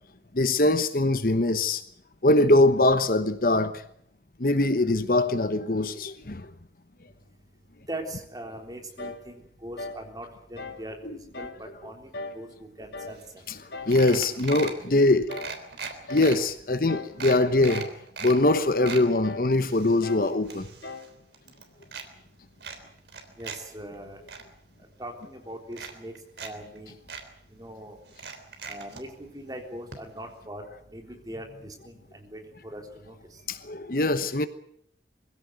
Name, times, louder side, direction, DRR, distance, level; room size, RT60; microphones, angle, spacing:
voice 1, 0.3-1.8 2.2-3.8 4.4-6.5 11.0-11.2 13.5-13.6 13.9-15.4 16.1-17.9 18.2-20.7 33.5-34.5, left 2 dB, 55° left, 1.1 m, -22 dB
voice 2, 7.9-13.2 23.4-24.2 24.8-27.0 27.5-28.0 28.7-33.4, right 1 dB, 20° right, 3.7 m, -41 dB
sound 1, 9.0-9.3 9.8-10.1 10.6-10.9 11.3-11.6 12.1-12.5 12.9-13.2 13.7-14.0 14.5-14.8 15.3-15.6 16.1-16.4 16.9-17.2 17.7-18.0 18.5-18.7 19.2-19.5 20.0-20.3 20.8-21.1, left 3 dB, 80° left, 2.7 m, -39 dB
sound 2, 13.2-13.3 13.5-13.6 13.9-14.8 15.3-16.4 16.8-16.9 17.2-18.4 18.7-19.1 19.6-21.1 21.3-22.1 22.6-23.6 23.9-24.4 25.2-25.3 25.7-26.5 26.8-26.9 27.1-27.2 28.1-29.0 29.9-30.0 30.3-30.4, right 5 dB, 75° right, 3.5 m, -38 dB
22.0 x 16.0 x 9.4 m
head